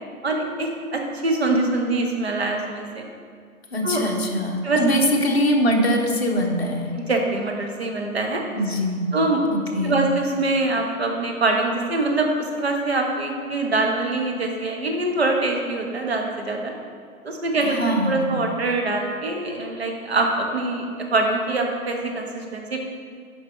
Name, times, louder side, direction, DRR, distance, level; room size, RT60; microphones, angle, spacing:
voice 1, 0.2-3.0 3.8-4.1 4.6-4.8 6.9-8.4 9.1-9.4 9.8-16.7 17.2-20.8 21.1-22.8, right 2 dB, 45° right, 2 dB, 1.1 m, -24 dB
voice 2, 3.7-6.9 8.5-9.2 9.5-10.1 17.6-18.3, equal, 45° left, 0 dB, 1.1 m, -22 dB
8.4 x 5.3 x 4.3 m, 2.1 s
hypercardioid pair, 175°, 43 cm